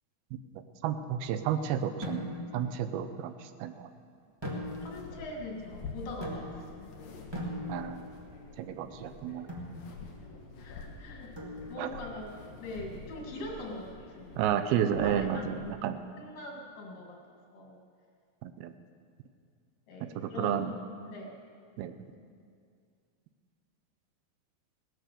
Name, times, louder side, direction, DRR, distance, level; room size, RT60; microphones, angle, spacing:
voice 1, 0.8-2.2 2.5-3.9 7.7-8.0 8.6-9.5 11.8-11.9 14.4-16.0 18.4-18.7 20.2-20.7 21.8-21.9, right 9 dB, 85° right, 10 dB, 2.6 m, -31 dB
sound 1, 2.0-2.6 4.4-5.1 6.2-6.8 7.3-8.1 9.5-9.8 11.3-12.0, equal, 15° right, 1.0 m, -39 dB
sound 2, 4.5-15.7, left 3 dB, 70° left, 3.2 m, -47 dB
voice 2, 4.8-6.6 10.6-11.3 11.7-14.4 14.9-17.2 17.5-17.8 19.9-20.7 21.1-21.4, left 1 dB, 90° left, 0 dB, 4.2 m, -42 dB
18.0 x 9.3 x 6.9 m, 2.2 s
omnidirectional pair, 4.3 m